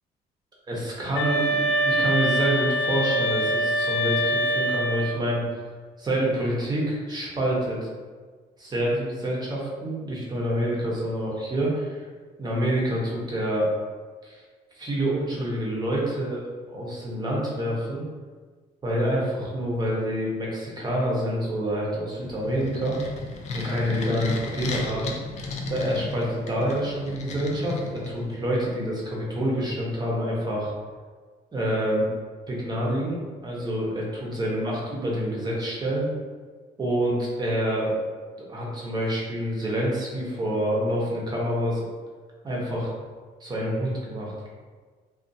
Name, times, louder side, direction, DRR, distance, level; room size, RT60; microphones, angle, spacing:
voice 1, 0.7-5.5 6.0-7.9 8.6-12.0 12.4-13.7 14.2-14.4 14.8-16.4 16.7-18.0 18.8-23.0 23.5-25.1 25.7-30.7 31.5-32.1 32.5-36.1 36.8-37.9 38.4-41.9 42.4-42.9 43.4-44.3, right 1 dB, 25° right, -4 dB, 0.8 m, -27 dB
sound 1, 1.1-5.3, equal, 85° left, 1.1 m, -24 dB
sound 2, 22.2-28.5, left 3 dB, 45° left, 0.4 m, -34 dB
2.5 x 2.4 x 2.6 m, 1.5 s
cardioid pair, 110°, 17 cm